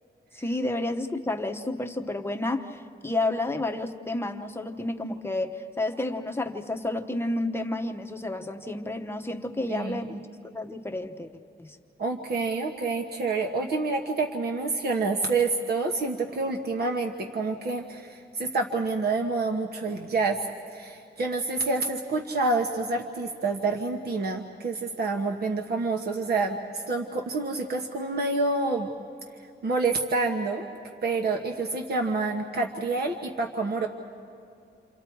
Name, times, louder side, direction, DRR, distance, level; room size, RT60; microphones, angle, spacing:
voice 1, 0.3-10.3 10.5-11.3 11.6-11.8, left 2 dB, 15° left, 4 dB, 0.9 m, -30 dB
voice 2, 9.7-10.0 12.0-28.9 29.6-30.7 31.0-33.9, right 3 dB, 60° right, 2 dB, 1.3 m, -28 dB
29.0 x 27.0 x 4.6 m, 2.6 s
wide cardioid pair, 170°, 18 cm